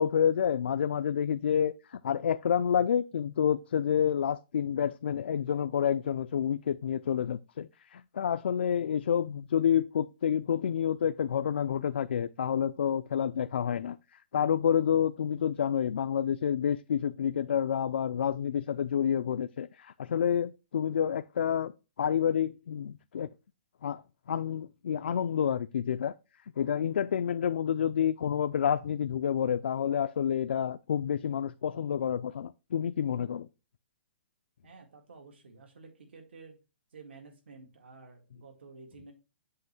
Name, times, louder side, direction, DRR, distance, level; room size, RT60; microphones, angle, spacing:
voice 1, 0.0-14.0 14.3-21.7 22.0-23.3 23.8-24.0 24.3-26.1 26.6-33.5, left 8 dB, 75° left, 0.4 m, -29 dB
voice 2, 34.6-36.6 36.9-39.1, right 4 dB, 80° right, 2.0 m, -51 dB
7.7 x 3.0 x 5.9 m
hypercardioid pair, 175°, 6 cm